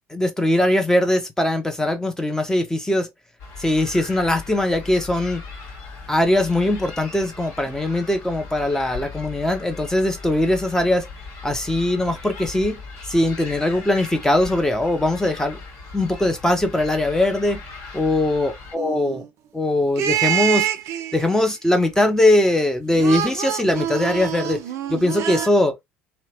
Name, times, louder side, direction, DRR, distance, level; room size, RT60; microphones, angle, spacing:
voice 1, 0.1-3.1 3.6-5.4 6.1-11.1 11.4-12.8 13.1-15.6 15.9-17.6 17.9-19.2 19.5-20.7 21.1-24.6 24.9-25.8, left 1 dB, 10° left, 0.5 m, -21 dB
sound 1, 3.4-18.8, left 4 dB, 50° left, 1.4 m, -38 dB
sound 2, 18.8-19.3 20.0-21.4 22.9-25.5, right 11 dB, 50° right, 0.4 m, -26 dB
2.7 x 2.1 x 2.7 m
figure-of-eight pair, 60°, 7 cm